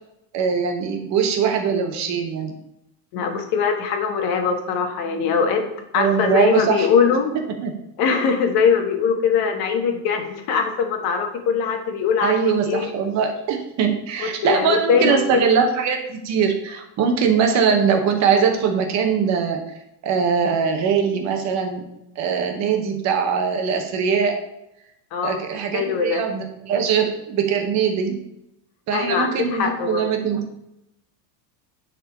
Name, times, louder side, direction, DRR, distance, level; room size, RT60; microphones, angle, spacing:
voice 1, 0.3-2.5 5.9-6.9 7.6-7.7 12.2-19.6 20.0-21.8 22.2-24.4 25.2-28.1 28.9-30.4, right 6 dB, 35° right, 4 dB, 0.8 m, -21 dB
voice 2, 3.1-5.7 5.9-7.3 8.0-12.9 14.2-15.2 25.1-25.4 25.7-26.2 28.9-30.1, left 6 dB, 50° left, 5 dB, 1.1 m, -21 dB
9.8 x 3.8 x 3.4 m, 0.85 s
cardioid pair, 175°, 48 cm